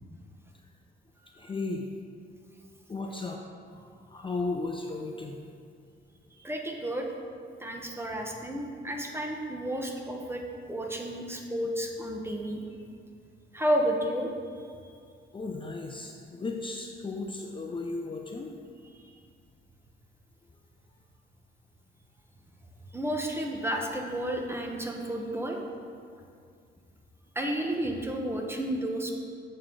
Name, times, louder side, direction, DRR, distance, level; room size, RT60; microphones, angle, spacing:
voice 1, 1.4-1.9 2.9-3.4 3.7-5.4 15.3-18.5, left 3 dB, 25° left, 1 dB, 0.6 m, -35 dB
voice 2, 6.4-7.1 7.6-10.4 10.7-12.6 13.5-14.7 22.9-25.6 27.3-29.1, equal, 10° right, 2 dB, 1.0 m, -31 dB
7.5 x 6.5 x 3.8 m, 2.2 s
cardioid pair, 90°, 20 cm